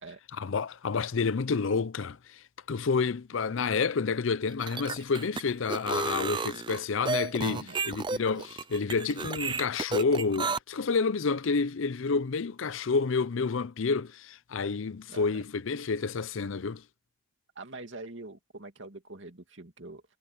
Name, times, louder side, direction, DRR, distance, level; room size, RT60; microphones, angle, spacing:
voice 1, 0.4-16.8, left 4 dB, 65° left, 0.5 m, -29 dB
sound 1, 4.5-10.6, right 4 dB, 20° right, 0.4 m, -32 dB
voice 2, 7.4-7.8 15.1-15.4 17.6-20.0, right 2 dB, 60° right, 2.6 m, -44 dB
head